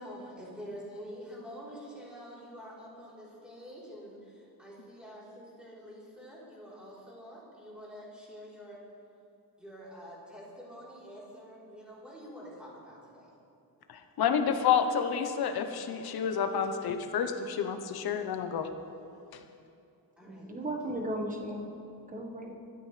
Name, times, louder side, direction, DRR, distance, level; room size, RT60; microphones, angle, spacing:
voice 1, 0.0-8.8 9.6-13.3 20.2-20.7, equal, ahead, -7 dB, 3.9 m, -47 dB
voice 2, 13.9-18.7 19.3-19.4, left 7 dB, 70° left, 6 dB, 1.1 m, -29 dB
voice 3, 20.2-21.7 22.1-22.5, right 1 dB, 20° right, 1 dB, 1.5 m, -36 dB
24.5 x 13.5 x 3.4 m, 2.6 s
wide cardioid pair, 170°, 38 cm